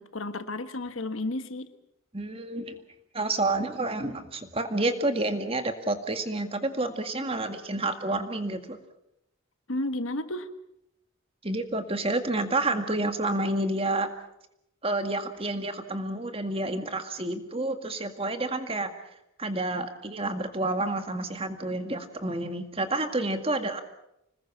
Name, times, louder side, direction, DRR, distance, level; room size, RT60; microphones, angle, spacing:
voice 1, 0.0-1.7 9.7-10.5, left 2 dB, 75° left, 10 dB, 1.5 m, -32 dB
voice 2, 2.1-2.8 3.1-8.8 11.4-14.1 14.8-18.9 19.4-23.8, right 2 dB, 25° right, 7 dB, 2.0 m, -29 dB
26.0 x 20.0 x 7.2 m, 0.82 s
head